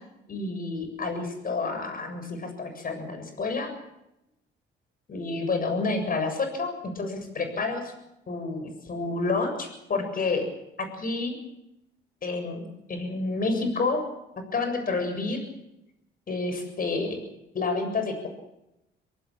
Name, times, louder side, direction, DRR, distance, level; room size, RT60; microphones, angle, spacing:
voice 1, 0.3-3.7 5.1-7.9 8.3-10.4 10.8-11.4 12.2-14.0 14.5-15.4 16.3-17.2 17.5-18.3, left 3 dB, 45° left, 7 dB, 7.3 m, -29 dB
24.0 x 18.5 x 7.6 m, 0.87 s
cardioid pair, 90°, 20 cm